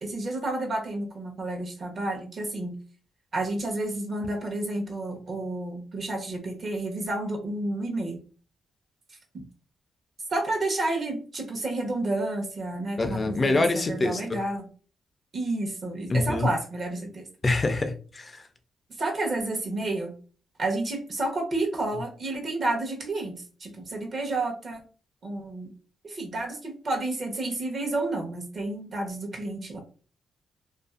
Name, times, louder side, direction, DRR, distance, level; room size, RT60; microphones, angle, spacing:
voice 1, 0.0-2.8 3.3-8.2 9.3-9.4 10.3-14.7 15.3-17.3 19.0-20.2 20.6-24.8 25.2-25.7 26.0-29.8, right 2 dB, 45° right, 0.9 m, -30 dB
voice 2, 13.0-14.4 16.1-16.5 17.4-18.5, left 2 dB, 30° left, 0.4 m, -25 dB
2.5 x 2.4 x 2.4 m
cardioid pair, 100°, 0 cm